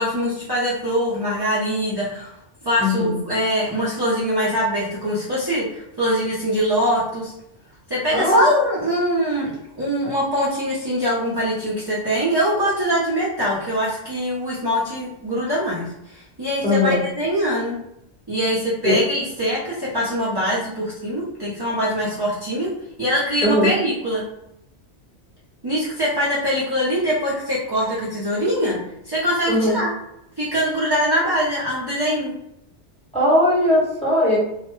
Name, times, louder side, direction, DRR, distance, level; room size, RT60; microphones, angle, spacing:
voice 1, 0.0-2.3 2.6-7.3 7.9-17.8 18.3-22.7 23.0-24.2 25.6-28.8 29.0-29.9 30.4-32.3, equal, 25° right, -8 dB, 0.6 m, -23 dB
voice 2, 2.8-3.2 8.1-8.5 16.6-17.0 18.8-18.9 23.4-23.7 29.5-29.8 33.1-34.4, left 1 dB, 5° left, -8 dB, 0.9 m, -19 dB
2.4 x 2.1 x 3.0 m, 0.81 s
omnidirectional pair, 1.2 m